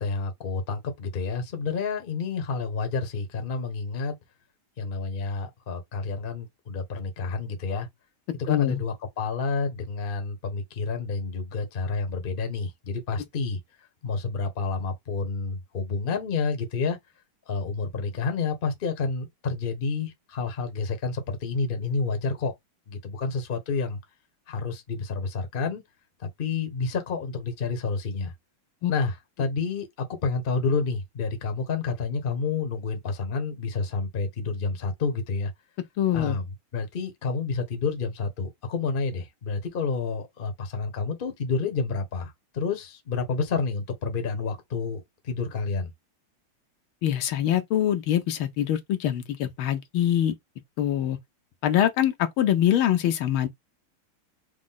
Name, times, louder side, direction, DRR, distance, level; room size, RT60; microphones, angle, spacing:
voice 1, 0.0-4.2 4.8-7.9 8.3-13.6 14.0-17.0 17.5-22.5 22.9-24.0 24.5-25.8 26.2-28.3 28.9-29.9 30.2-35.5 36.1-45.9, left 4 dB, 35° left, 0.9 m, -29 dB
voice 2, 8.5-8.8 28.8-28.9 36.0-36.4 47.0-50.3 50.8-51.2 51.6-53.5, left 11 dB, 75° left, 1.5 m, -24 dB
5.0 x 2.3 x 3.7 m
omnidirectional pair, 2.3 m